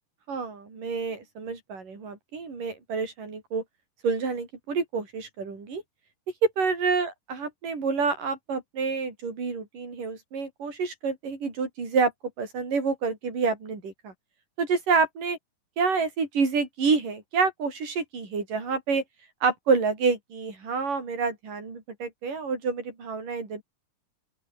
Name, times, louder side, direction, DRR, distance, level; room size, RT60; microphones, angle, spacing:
voice 1, 0.3-3.6 4.0-5.8 6.6-12.1 12.4-14.1 14.6-15.4 15.8-19.0 19.4-23.6, right 4 dB, 75° right, 7.7 m, -28 dB
open air
omnidirectional pair, 3.8 m